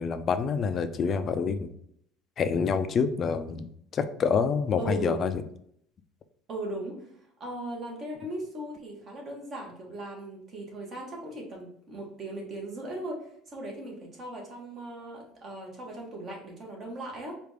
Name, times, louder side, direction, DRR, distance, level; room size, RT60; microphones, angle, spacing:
voice 1, 0.0-1.7 2.4-5.4, left 5 dB, 35° left, 10 dB, 0.4 m, -27 dB
voice 2, 4.8-5.3 6.5-17.3, right 1 dB, 35° right, -1 dB, 1.4 m, -38 dB
4.7 x 2.5 x 3.3 m, 0.69 s
cardioid pair, 130°, 0 cm